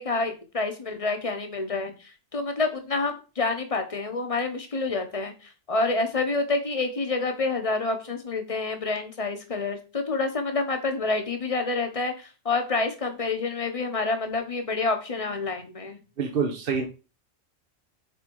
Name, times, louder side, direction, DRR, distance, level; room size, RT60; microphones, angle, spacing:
voice 1, 0.0-16.0, left 3 dB, 30° left, 6 dB, 1.1 m, -28 dB
voice 2, 16.2-16.8, right 6 dB, 50° right, 4 dB, 1.0 m, -26 dB
8.1 x 3.7 x 4.7 m, 0.33 s
omnidirectional pair, 1.3 m